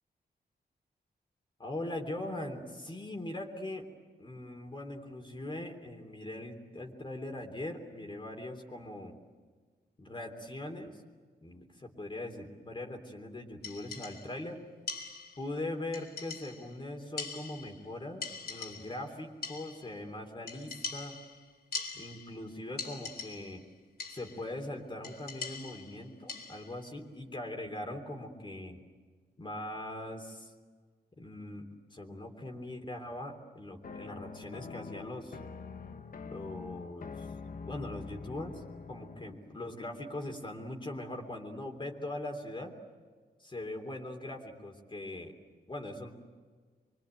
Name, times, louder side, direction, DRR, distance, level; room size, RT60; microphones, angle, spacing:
voice 1, 1.6-3.9 4.2-9.2 10.0-11.0 11.4-14.6 15.4-21.2 21.9-23.6 24.1-28.8 29.4-30.5 31.2-35.4 36.3-37.3 37.7-38.6 38.9-42.7 43.4-45.3 45.7-46.1, left 1 dB, 30° left, 2 dB, 3.3 m, -41 dB
sound 1, 13.6-14.4 14.9-15.6 15.9-16.8 17.2-17.9 18.2-19.1 19.4-20.0 20.5-22.4 22.8-23.6 24.0-24.5 25.0-26.8, left 4 dB, 70° left, 4.2 m, -42 dB
sound 2, 33.8-39.4, left 5 dB, 55° left, 1.2 m, -45 dB
25.5 x 24.0 x 9.1 m, 1.6 s
wide cardioid pair, 110°, 17 cm